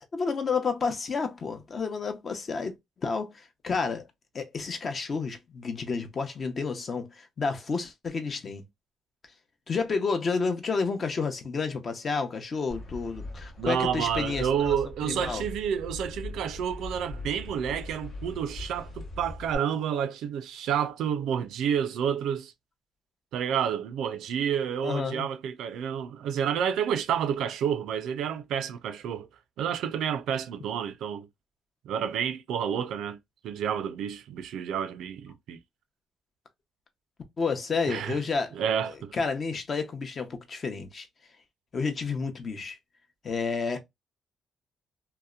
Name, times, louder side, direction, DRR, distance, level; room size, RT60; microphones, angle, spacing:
voice 1, 0.1-2.8 3.0-4.1 4.3-8.6 9.7-14.8 15.0-15.4 24.8-25.3 37.4-41.1 41.7-42.8 43.2-43.8, left 4 dB, 45° left, 0.6 m, -30 dB
sound 1, 12.7-19.6, left 2 dB, 75° left, 1.0 m, -41 dB
voice 2, 13.6-22.5 23.3-29.3 29.6-31.3 31.8-33.2 33.4-35.6 37.9-38.2 38.5-39.1, right 8 dB, 80° right, 0.4 m, -29 dB
2.7 x 2.1 x 2.3 m
cardioid pair, 90°, 0 cm